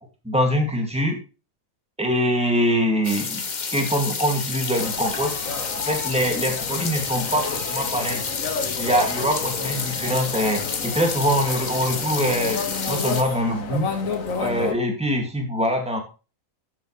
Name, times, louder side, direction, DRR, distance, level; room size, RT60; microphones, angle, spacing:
voice 1, 0.2-1.2 2.0-3.4 3.7-5.4 5.8-8.2 8.8-12.6 12.9-13.9 14.4-16.0, equal, 5° right, 2 dB, 2.4 m, -23 dB
sound 1, 3.0-13.2, left 5 dB, 35° left, 1.0 m, -30 dB
sound 2, 4.8-14.7, left 5 dB, 75° left, 1.9 m, -31 dB
13.0 x 7.3 x 3.3 m, 0.32 s
omnidirectional pair, 1.4 m